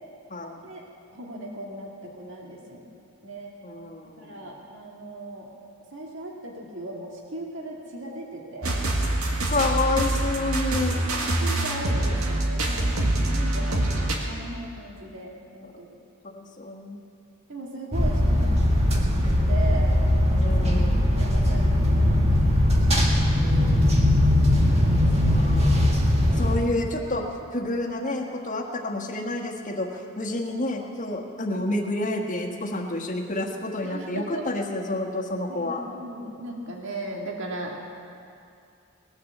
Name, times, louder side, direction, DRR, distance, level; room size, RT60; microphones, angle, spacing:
voice 1, 0.3-0.7 3.6-4.5 9.5-11.0 15.6-15.7 16.2-17.0 20.4-21.0 23.4-24.5 24.9-25.0 25.3-25.9 26.4-27.2 27.5-29.9 30.2-35.8, left 2 dB, 35° left, 1 dB, 1.5 m, -29 dB
voice 2, 1.1-2.8 3.2-3.6 4.2-5.5 5.9-8.8 10.9-13.9 14.2-16.0 17.5-22.4 26.1-26.5 33.8-34.6 35.5-37.8, right 2 dB, 60° right, -1 dB, 1.9 m, -38 dB
sound 1, 8.6-14.2, right 1 dB, 85° right, 1.8 m, -25 dB
sound 2, 17.9-26.6, left 1 dB, 30° right, 1.7 m, -20 dB
19.0 x 9.7 x 7.4 m, 2.5 s
head